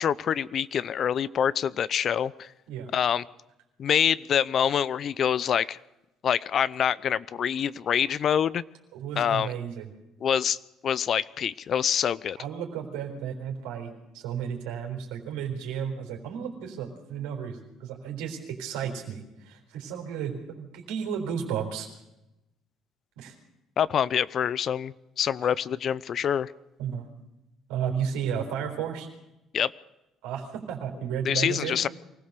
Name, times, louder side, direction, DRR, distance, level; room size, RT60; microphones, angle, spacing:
voice 1, 0.0-2.5 2.9-3.2 3.8-5.8 6.2-8.6 9.2-9.5 10.2-10.6 10.8-12.4 23.8-26.5 29.5-29.7 31.2-31.9, left 8 dB, 55° left, 20 dB, 0.6 m, -26 dB
voice 2, 8.9-9.9 12.4-21.9 23.2-23.3 25.4-25.5 26.8-27.1 27.7-29.1 30.2-31.8, right 8 dB, 90° right, 2 dB, 4.1 m, -33 dB
24.0 x 16.0 x 6.8 m, 0.93 s
supercardioid pair, 75°, 0 cm